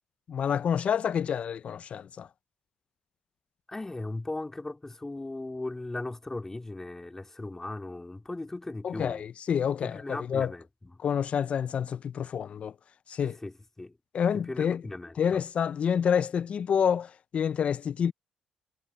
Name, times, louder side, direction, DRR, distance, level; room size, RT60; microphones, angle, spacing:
voice 1, 0.3-2.3 8.8-10.5 11.0-12.7 13.1-13.3 14.1-14.8 15.2-18.1, left 8 dB, 50° left, 0.5 m, -28 dB
voice 2, 3.7-9.2 9.8-11.0 13.2-14.0 14.3-15.4, left 2 dB, 15° left, 2.4 m, -38 dB
cardioid pair, 85°, 3 cm